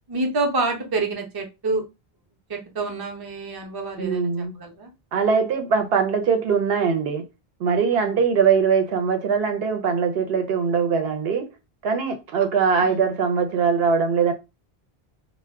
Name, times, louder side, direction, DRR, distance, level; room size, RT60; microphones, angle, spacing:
voice 1, 0.1-1.8 2.5-4.9 7.9-8.2 12.8-13.0, right 3 dB, 30° right, 0.5 m, -28 dB
voice 2, 4.0-4.6 5.1-7.2 7.6-11.5 11.8-14.3, right 6 dB, 75° right, 0.8 m, -21 dB
2.1 x 2.1 x 3.4 m
omnidirectional pair, 1.0 m